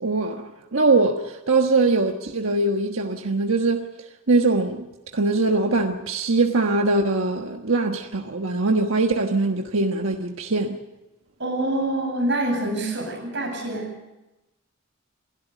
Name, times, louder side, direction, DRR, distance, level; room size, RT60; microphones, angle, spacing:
voice 1, 0.0-3.9 4.3-4.8 5.1-10.8, right 3 dB, 85° right, 1.3 m, -22 dB
voice 2, 11.4-14.0, right 1 dB, 60° right, 7.9 m, -26 dB
27.5 x 12.5 x 9.1 m
head